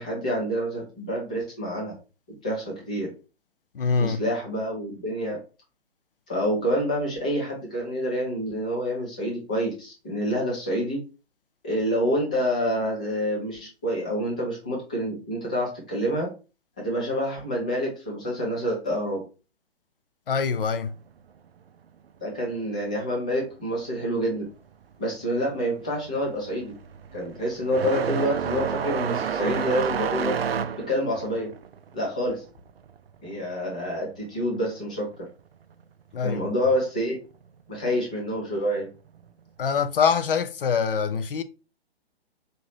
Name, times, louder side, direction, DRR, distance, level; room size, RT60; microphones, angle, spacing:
voice 1, 0.0-1.9 2.4-3.1 4.0-5.4 6.3-11.0 11.6-16.3 16.8-19.2 22.2-24.5 25.0-26.7 27.1-30.3 30.9-31.5 31.9-32.4 33.2-35.1 36.2-37.2 37.7-38.9, equal, 10° left, 0.3 m, -27 dB
voice 2, 3.7-4.2 20.3-20.9 36.1-36.4 39.6-41.4, left 6 dB, 60° left, 0.5 m, -24 dB
sound 1, 25.1-25.4 25.8-34.1 34.4-35.4 36.4-36.5 37.3-37.4 39.1-39.3, right 7 dB, 70° right, 0.4 m, -30 dB
4.1 x 2.7 x 3.2 m
figure-of-eight pair, 125°, 31 cm